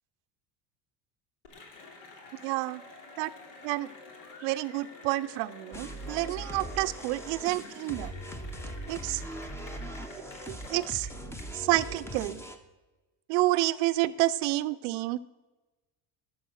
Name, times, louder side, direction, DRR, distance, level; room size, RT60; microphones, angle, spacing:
Cheering / Applause, 1.4-11.4, left 3 dB, 75° left, 2.8 m, -49 dB
voice 1, 2.4-2.8 3.2-3.3 3.6-3.9 4.4-8.1 8.9-9.2 10.5-11.1 11.5-12.4 13.3-15.2, right 18 dB, 80° right, 14 dB, 0.6 m, -29 dB
sound 1, 5.7-12.6, right 1 dB, 5° left, 0.7 m, -40 dB
12.0 x 7.1 x 6.3 m, 1.2 s
cardioid pair, 140°, 46 cm